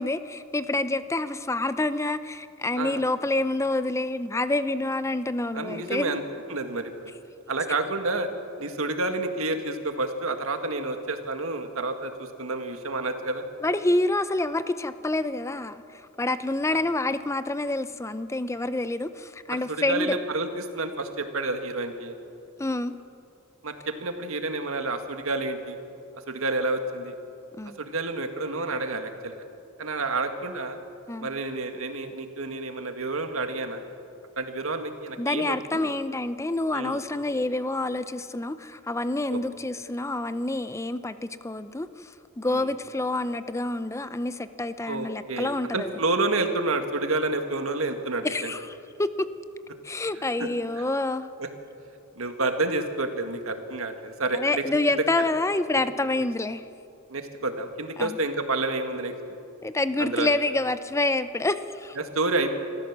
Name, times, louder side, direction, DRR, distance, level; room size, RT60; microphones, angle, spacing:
voice 1, 0.0-6.2 13.6-20.2 22.6-22.9 27.6-27.8 31.1-31.3 35.2-46.0 48.2-49.3 49.8-51.3 54.3-56.6 58.0-58.2 59.6-62.0, left 2 dB, 15° left, 12 dB, 0.6 m, -27 dB
voice 2, 5.5-6.2 6.5-6.9 7.5-8.3 8.6-13.4 16.7-16.8 19.5-22.1 23.6-25.8 26.3-27.1 27.8-29.3 29.8-30.8 31.2-33.9 34.4-35.9 36.7-37.0 39.3-39.4 42.5-42.7 44.9-48.5 50.4-50.5 50.8-50.9 51.4-51.5 52.2-55.3 57.1-59.1 60.0-60.3 62.0-62.5, right 2 dB, 80° right, 6 dB, 1.9 m, -29 dB
26.5 x 14.5 x 7.4 m, 2.6 s
head